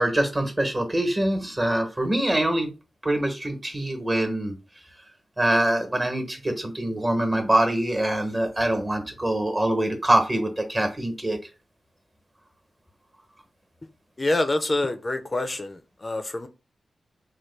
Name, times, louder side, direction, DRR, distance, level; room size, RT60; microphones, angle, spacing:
voice 1, 0.0-2.7 3.0-4.6 5.4-11.4, right 1 dB, 30° right, 1.0 m, -24 dB
voice 2, 14.2-16.5, left 2 dB, 35° left, 0.4 m, -26 dB
3.0 x 2.2 x 3.2 m
cardioid pair, 50°, 0 cm